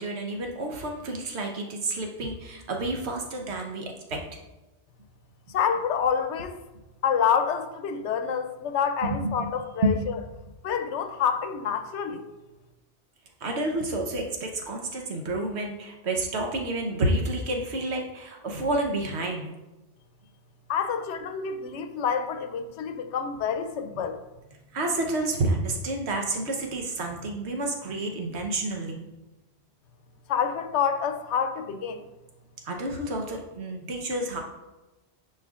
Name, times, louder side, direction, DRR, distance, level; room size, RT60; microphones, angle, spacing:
voice 1, 0.0-4.4 9.0-9.5 9.8-9.9 13.4-19.6 24.7-29.0 32.6-34.4, right 2 dB, 70° right, 1.2 m, -29 dB
voice 2, 5.5-6.6 7.0-9.9 10.6-12.2 20.7-24.2 30.3-32.0, left 7 dB, 85° left, 0.9 m, -27 dB
10.0 x 4.4 x 2.4 m
omnidirectional pair, 1.2 m